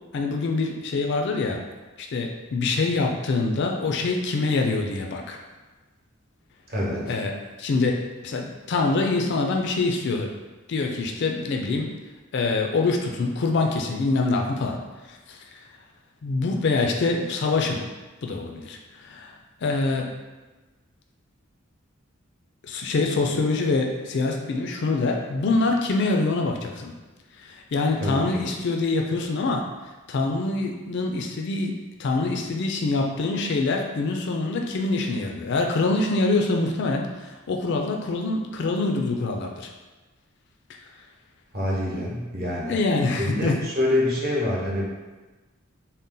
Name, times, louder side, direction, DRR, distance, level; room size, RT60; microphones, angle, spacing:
voice 1, 0.1-1.6 2.0-5.4 7.1-7.3 7.6-10.3 10.7-11.9 12.3-14.8 15.1-15.4 16.2-17.8 18.2-19.3 19.6-20.1 22.7-26.9 27.4-29.7 30.1-39.7 42.7-43.6, left 3 dB, 55° left, 2 dB, 0.4 m, -25 dB
voice 2, 6.7-7.1 28.0-28.4 41.5-42.8 43.2-44.8, left 1 dB, 50° right, -4 dB, 0.9 m, -26 dB
4.0 x 2.1 x 3.7 m, 1.2 s
head